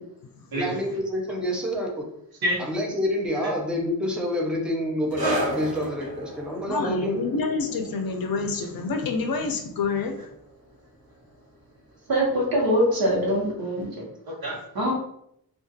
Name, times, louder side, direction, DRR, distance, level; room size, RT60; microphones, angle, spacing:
voice 1, 0.5-2.0 2.6-7.2, equal, ahead, 0 dB, 0.4 m, -27 dB
sound 1, 5.1-12.1 12.4-12.6 13.3-13.4, right 1 dB, 40° right, 1.2 m, -35 dB
voice 2, 6.7-10.3, left 4 dB, 65° left, 5 dB, 0.5 m, -28 dB
voice 3, 12.1-13.9 14.3-14.9, equal, 65° right, -2 dB, 1.0 m, -24 dB
2.4 x 2.3 x 2.6 m, 0.74 s
wide cardioid pair, 115°, 38 cm